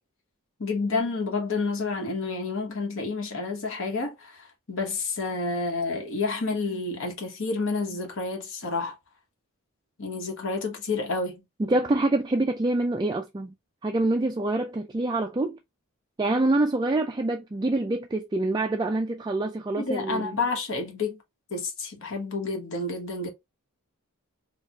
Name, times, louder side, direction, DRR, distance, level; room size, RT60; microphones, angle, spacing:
voice 1, 0.6-9.0 10.0-11.4 19.8-21.2 21.5-23.3, left 3 dB, 60° left, 1.2 m, -29 dB
voice 2, 11.6-13.5 13.8-15.6 16.2-20.3, right 2 dB, 20° right, 0.3 m, -26 dB
4.5 x 2.4 x 2.5 m
head